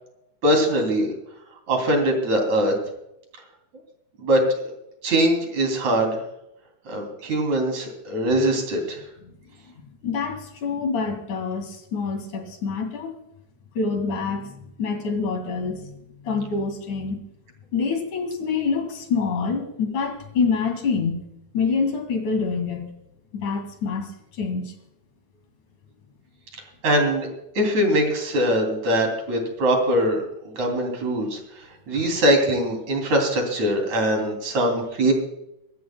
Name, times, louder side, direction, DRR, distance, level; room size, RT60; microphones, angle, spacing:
voice 1, 0.4-1.1 1.7-2.7 4.2-4.4 5.0-6.2 6.9-9.0 26.8-27.3 27.6-30.2 30.5-31.4 31.9-35.1, right 1 dB, 60° right, 3 dB, 4.3 m, -22 dB
voice 2, 10.0-13.1 13.8-17.2 17.7-21.3 21.5-22.9 23.3-24.7, left 5 dB, 70° left, 5 dB, 3.6 m, -26 dB
25.0 x 13.5 x 2.3 m, 0.84 s
omnidirectional pair, 3.7 m